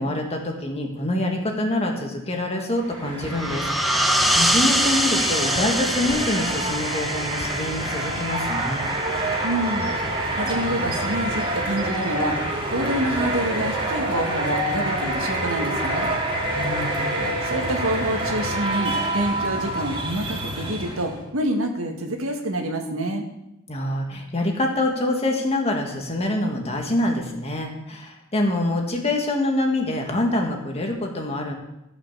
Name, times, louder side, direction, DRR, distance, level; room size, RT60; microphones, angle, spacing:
voice 1, 0.0-8.9 16.5-17.3 23.7-31.5, left 1 dB, 30° left, 2 dB, 1.7 m, -26 dB
sound 1, 2.7-21.2, right 1 dB, 25° right, 1.9 m, -27 dB
sound 2, 3.3-8.7, equal, ahead, 0.7 m, -24 dB
voice 2, 9.4-12.4 12.7-16.1 17.4-23.3, right 1 dB, 75° right, 3 dB, 1.7 m, -27 dB
14.0 x 5.8 x 6.7 m, 0.89 s
head